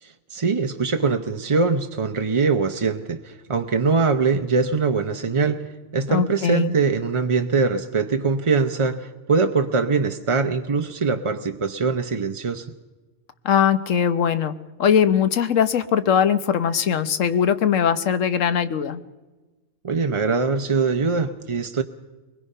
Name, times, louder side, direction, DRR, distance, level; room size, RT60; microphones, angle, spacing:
voice 1, 0.0-12.7 19.8-21.8, right 4 dB, 35° right, 6 dB, 0.6 m, -22 dB
voice 2, 6.1-6.7 13.4-14.5 14.8-19.0, left 8 dB, 70° left, 12 dB, 1.2 m, -20 dB
23.0 x 20.5 x 5.5 m, 1.2 s
omnidirectional pair, 1.4 m